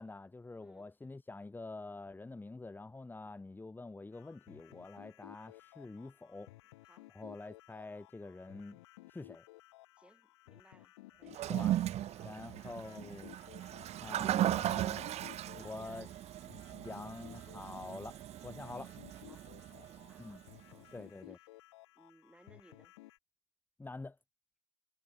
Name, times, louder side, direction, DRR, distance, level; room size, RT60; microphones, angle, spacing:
voice 1, 0.0-6.5 7.1-8.8 9.1-9.4 11.5-11.7 12.2-13.3 14.0-15.1 15.6-16.1 16.8-18.9 20.2-20.4 20.9-21.4 23.8-24.2, left 3 dB, 15° left, 2.2 m, -46 dB
voice 2, 0.6-0.9 6.8-7.1 10.0-11.8 12.2-12.5 15.3-16.1 16.9-17.4 19.2-19.5 19.8-21.6 22.0-22.9, right 1 dB, 10° right, 6.9 m, -65 dB
sound 1, 4.1-23.2, left 19 dB, 85° left, 3.8 m, -58 dB
Toilet flush, 11.3-20.6, right 12 dB, 50° right, 0.9 m, -37 dB
hypercardioid pair, 80°, 14 cm